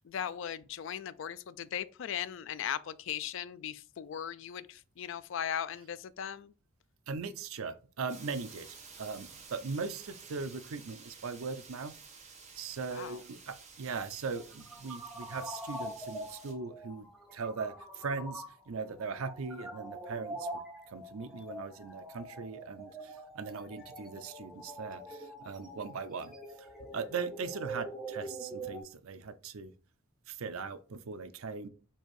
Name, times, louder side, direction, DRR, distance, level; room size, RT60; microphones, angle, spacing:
voice 1, 0.0-6.5 12.9-13.2, left 9 dB, 60° left, 0.3 m, -38 dB
voice 2, 7.1-8.7 9.0-11.9 12.6-20.5 20.9-29.7 30.3-31.7, right 4 dB, 80° right, 0.5 m, -39 dB
sound 1, 8.1-16.5, right 5 dB, 35° right, 1.0 m, -53 dB
sound 2, 14.4-28.8, right 1 dB, ahead, 0.9 m, -44 dB
4.4 x 2.6 x 4.6 m
head